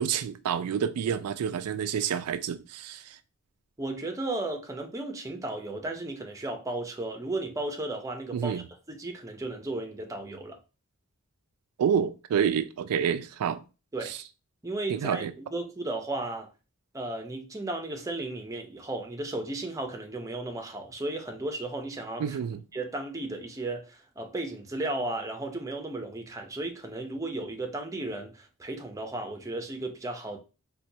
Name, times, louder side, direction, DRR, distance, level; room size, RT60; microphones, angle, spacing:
voice 1, 0.0-3.0 8.3-8.6 11.8-13.6 14.0-14.2 14.9-15.3 22.2-22.6, right 8 dB, 90° right, 0.3 m, -28 dB
voice 2, 3.8-10.6 13.9-14.1 14.6-16.5 16.9-22.4 22.7-30.4, right 2 dB, 15° right, 0.5 m, -34 dB
4.1 x 2.2 x 2.6 m
head